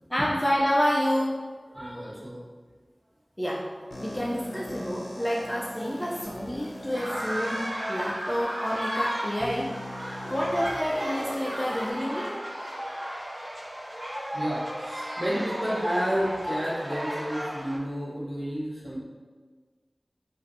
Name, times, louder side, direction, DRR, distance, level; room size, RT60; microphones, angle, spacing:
voice 1, 0.1-1.4 3.4-3.7 4.0-9.7 10.0-12.3, equal, 15° left, -4 dB, 0.5 m, -28 dB
voice 2, 1.7-2.3 5.2-5.9 10.1-10.6 14.3-19.0, equal, 35° right, -7 dB, 1.3 m, -31 dB
sound 1, 3.9-7.7 8.4-8.5 9.4-11.9, left 1 dB, 80° left, 0.5 m, -41 dB
sound 2, 6.9-17.8, equal, 55° right, 0.8 m, -34 dB
4.6 x 2.5 x 2.7 m, 1.5 s
wide cardioid pair, 50°, 0 cm